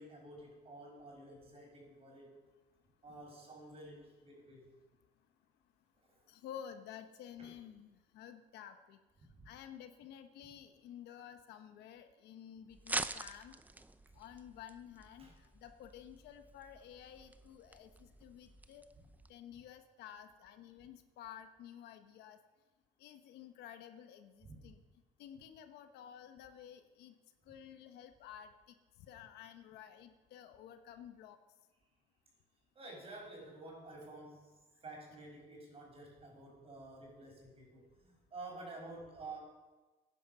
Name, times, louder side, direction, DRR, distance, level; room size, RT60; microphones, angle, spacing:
voice 1, 0.0-2.3 3.0-4.7 7.4-7.5 9.3-9.5 15.2-15.3 24.4-24.6 32.8-34.6 34.8-39.4, right 2 dB, 35° right, 0 dB, 5.5 m, -51 dB
voice 2, 6.3-9.0 9.4-13.5 14.1-18.8 19.3-22.4 23.0-24.8 25.2-27.2 27.5-31.4, left 9 dB, 80° left, 8 dB, 1.2 m, -52 dB
sound 1, 12.7-19.3, right 2 dB, 10° right, 0.6 m, -46 dB
15.0 x 10.5 x 5.5 m, 1.2 s
cardioid pair, 110°, 17 cm